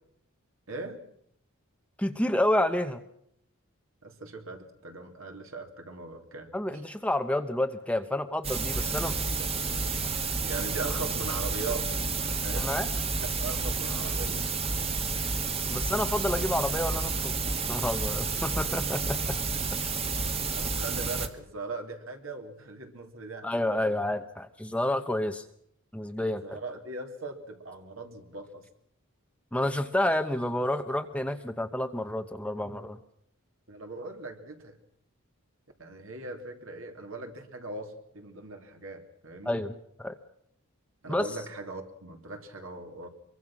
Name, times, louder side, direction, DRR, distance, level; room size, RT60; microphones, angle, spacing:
voice 1, 0.7-1.0 4.0-6.5 9.0-10.0 10.4-12.7 13.2-14.4 20.6-23.8 26.2-28.6 33.7-34.8 35.8-39.6 41.0-43.1, right 3 dB, 65° right, 4 dB, 3.0 m, -40 dB
voice 2, 2.0-3.0 6.5-9.1 12.6-12.9 15.7-17.3 17.7-19.4 23.4-25.4 25.9-26.4 29.5-33.0 39.4-40.2 41.1-41.3, left 1 dB, 5° left, 7 dB, 0.8 m, -29 dB
sound 1, 8.4-21.3, right 4 dB, 25° right, 1.6 m, -30 dB
25.0 x 23.0 x 6.1 m, 0.71 s
head